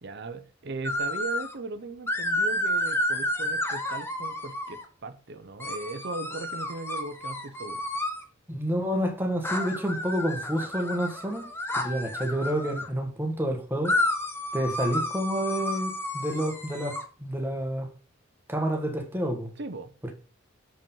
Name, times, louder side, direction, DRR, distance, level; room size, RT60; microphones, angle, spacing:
voice 1, 0.0-7.8 19.6-20.1, right 3 dB, 55° right, 0.8 m, -38 dB
sound 1, 0.8-1.5 2.1-4.8 5.6-8.2 9.4-12.9 13.8-17.0, left 1 dB, 10° left, 1.1 m, -31 dB
voice 2, 8.5-11.5 11.8-14.0 14.5-17.9 18.5-19.5 20.0-20.1, equal, 10° right, 1.5 m, -29 dB
7.0 x 5.3 x 5.5 m
head